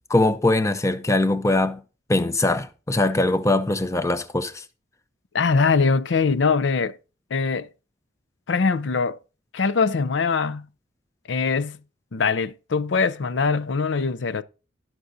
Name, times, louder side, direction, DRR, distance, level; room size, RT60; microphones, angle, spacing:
voice 1, 0.1-1.8 2.1-4.6, left 2 dB, 15° left, 0.6 m, -21 dB
voice 2, 5.3-7.0 7.3-7.7 8.5-9.2 9.5-10.7 11.3-11.8 12.1-14.4, left 4 dB, 65° left, 0.5 m, -22 dB
18.0 x 6.0 x 2.6 m
head